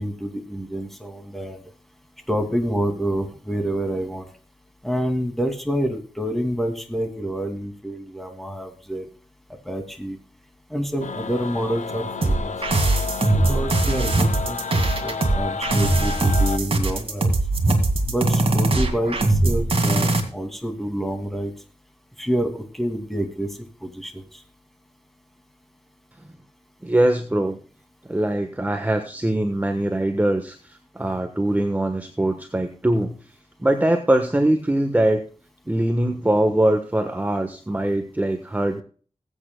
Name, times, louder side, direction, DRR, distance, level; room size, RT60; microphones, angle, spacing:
voice 1, 0.0-1.6 2.3-4.3 4.8-9.0 9.7-10.2 10.7-12.5 13.3-17.3 18.1-21.5 22.2-23.5 23.8-24.4, equal, ahead, 5 dB, 2.5 m, -27 dB
sound 1, 11.0-16.6, left 5 dB, 80° left, 0.8 m, -31 dB
sound 2, 12.2-20.2, right 2 dB, 50° right, 2.2 m, -20 dB
voice 2, 26.8-27.6 28.1-33.1 33.6-35.2 35.7-38.8, right 1 dB, 15° right, 6 dB, 1.2 m, -22 dB
20.0 x 8.9 x 2.3 m, 0.40 s
wide cardioid pair, 85°, 12 cm